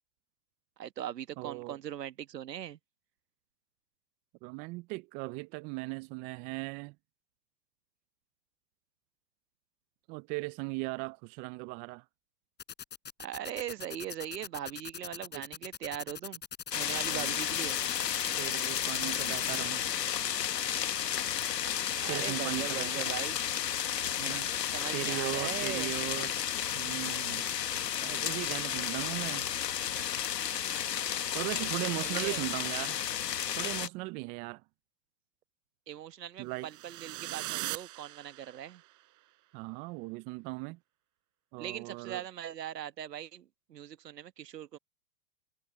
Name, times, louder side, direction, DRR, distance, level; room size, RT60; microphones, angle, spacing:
voice 1, 0.8-2.8 13.2-16.4 16.7-17.8 22.0-23.4 24.7-25.9 31.5-32.5 35.9-38.8 41.6-44.8, right 10 dB, 80° right, 1.4 m, -40 dB
voice 2, 1.4-1.8 4.4-6.9 10.1-12.0 15.3-15.5 17.1-17.4 18.4-19.8 22.1-23.2 24.2-24.5 24.9-26.3 26.7-27.4 28.0-29.5 31.3-33.0 33.6-34.6 36.4-36.7 39.5-40.8 41.5-42.2, right 24 dB, 20° right, 0.4 m, -38 dB
sound 1, 12.6-19.6, left 7 dB, 20° left, 5.6 m, -41 dB
sound 2, 16.7-33.9, left 9 dB, 80° left, 1.5 m, -32 dB
sound 3, 36.6-38.8, right 18 dB, 40° right, 5.4 m, -40 dB
hypercardioid pair, 105°, 48 cm